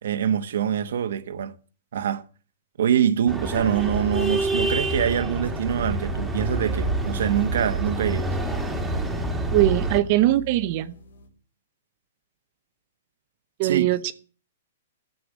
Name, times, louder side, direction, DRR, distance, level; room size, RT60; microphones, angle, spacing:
voice 1, 0.0-1.5 1.9-2.2 2.8-8.3 13.6-13.9, right 9 dB, 70° right, 1.2 m, -24 dB
sound 1, 3.3-10.0, right 2 dB, 5° right, 2.0 m, -27 dB
sound 2, 6.2-11.3, left 1 dB, 90° left, 3.5 m, -42 dB
voice 2, 9.5-10.9 13.6-14.1, right 15 dB, 40° right, 0.8 m, -21 dB
13.5 x 7.8 x 7.3 m
hypercardioid pair, 155°, 0 cm